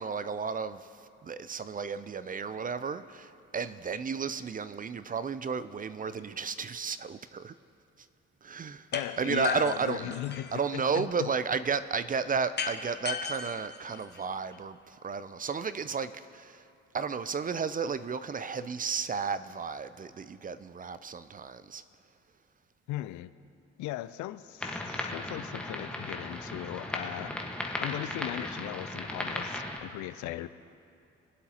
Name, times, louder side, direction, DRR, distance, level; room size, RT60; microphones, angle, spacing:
voice 1, 0.0-7.5 8.4-8.9 9.2-10.1 10.5-16.6 16.9-21.8, right 5 dB, 30° right, 14 dB, 0.4 m, -33 dB
voice 2, 8.9-11.3 22.9-23.3 23.8-27.3 27.8-30.5, left 14 dB, 70° left, 14 dB, 0.5 m, -38 dB
sound 1, 8.9-9.1 9.4-10.6 12.6-14.6, left 6 dB, 35° left, 0.9 m, -35 dB
sound 2, 24.6-29.8, left 1 dB, 5° left, 1.4 m, -36 dB
21.5 x 7.8 x 2.9 m, 2.5 s
hypercardioid pair, 50°, 30 cm